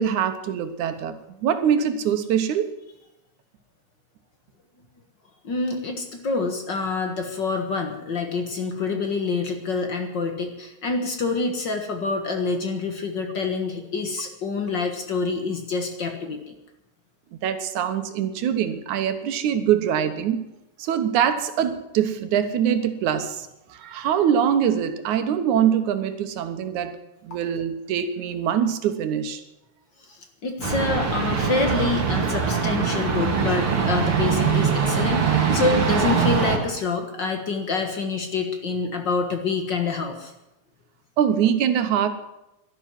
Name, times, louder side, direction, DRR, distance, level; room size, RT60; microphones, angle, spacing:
voice 1, 0.0-2.7 17.4-20.4 20.8-26.9 27.2-29.4 41.2-42.1, right 9 dB, 85° right, 9 dB, 2.6 m, -23 dB
voice 2, 5.4-16.6 30.4-40.3, left 4 dB, 45° left, 4 dB, 1.8 m, -26 dB
sound 1, 30.6-36.6, right 6 dB, 50° right, 2.8 m, -22 dB
12.0 x 11.5 x 9.2 m, 0.91 s
omnidirectional pair, 3.3 m